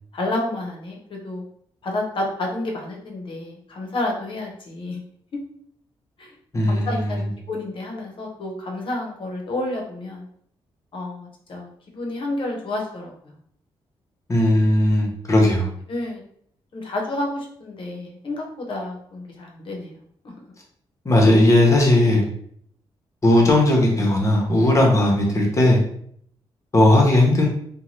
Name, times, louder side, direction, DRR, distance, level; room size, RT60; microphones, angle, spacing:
voice 1, 0.1-1.4 1.8-5.0 6.2-6.3 6.7-10.2 10.9-13.3 15.9-16.2 16.7-20.0 20.4-20.5, left 2 dB, 55° left, 0 dB, 0.8 m, -30 dB
voice 2, 6.5-7.1 14.3-15.7 21.0-22.2 23.2-25.8 26.7-27.5, left 1 dB, 30° left, -1 dB, 0.9 m, -17 dB
2.6 x 2.2 x 3.1 m, 0.65 s
cardioid pair, 105°, 10 cm